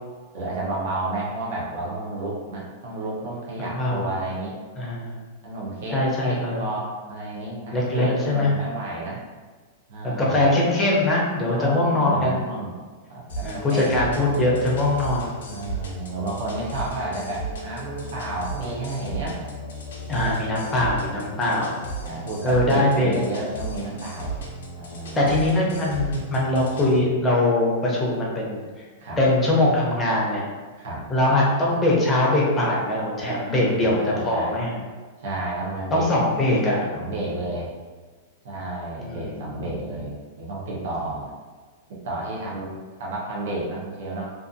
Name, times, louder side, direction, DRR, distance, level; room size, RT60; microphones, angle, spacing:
voice 1, 0.3-4.6 5.4-9.2 9.9-10.5 11.5-12.8 13.1-14.1 15.5-19.4 20.1-20.8 22.0-24.3 24.8-25.3 29.0-29.2 30.8-31.0 33.2-34.5 35.2-36.1 36.9-37.7 38.4-41.3 42.0-44.3, right 2 dB, 65° right, -5 dB, 0.8 m, -31 dB
voice 2, 3.6-4.1 4.8-5.1 5.9-6.6 7.7-8.5 10.2-12.4 13.4-15.3 20.1-21.8 22.4-23.2 25.2-28.9 29.2-30.4 31.1-34.8 35.9-36.9 39.0-39.5, left 1 dB, 15° left, -4 dB, 0.6 m, -22 dB
sound 1, 13.3-27.0, right 2 dB, 90° left, 0.6 m, -35 dB
2.5 x 2.5 x 2.6 m, 1.4 s
supercardioid pair, 160°, 0 cm